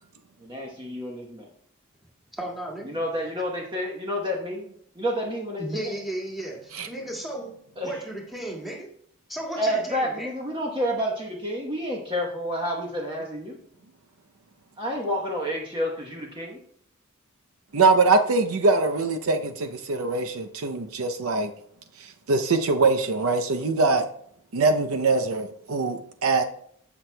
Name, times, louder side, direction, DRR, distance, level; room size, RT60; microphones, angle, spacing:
voice 1, 0.4-1.5 2.8-6.0 7.8-8.0 9.6-13.6 14.8-16.6, equal, 20° right, 1.0 m, -29 dB
voice 2, 2.3-3.0 5.6-7.5 7.8-8.9 9.3-10.3, right 1 dB, ahead, 1.9 m, -34 dB
voice 3, 17.7-21.5 22.3-24.1 24.5-26.4, right 3 dB, 75° right, 0.6 m, -22 dB
15.5 x 6.0 x 2.2 m
head